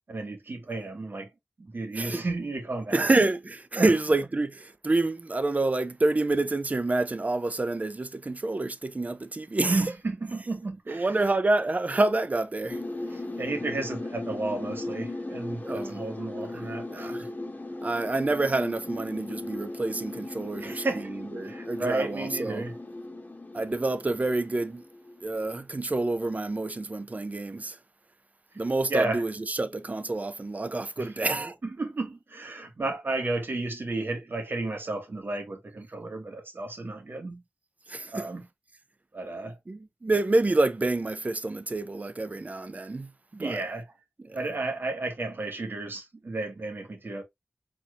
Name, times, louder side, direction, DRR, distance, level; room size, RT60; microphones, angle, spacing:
voice 1, 0.1-1.3 1.6-3.1 3.7-3.9 9.6-11.1 13.1-17.3 20.6-21.1 21.4-22.7 28.9-29.2 31.0-31.1 31.6-37.4 38.1-38.5 39.1-39.6 43.4-43.9 44.3-47.2, right 2 dB, 65° right, 1.9 m, -32 dB
voice 2, 2.9-9.8 10.9-12.8 15.6-16.0 16.5-16.6 16.9-17.3 17.8-22.6 23.5-24.8 25.2-27.8 28.6-31.6 37.9-38.3 39.7-43.6 44.2-44.4, right 2 dB, 40° right, 0.7 m, -28 dB
sound 1, 12.7-25.5, left 2 dB, 45° left, 1.3 m, -37 dB
4.4 x 4.3 x 2.6 m
wide cardioid pair, 75°, 4 cm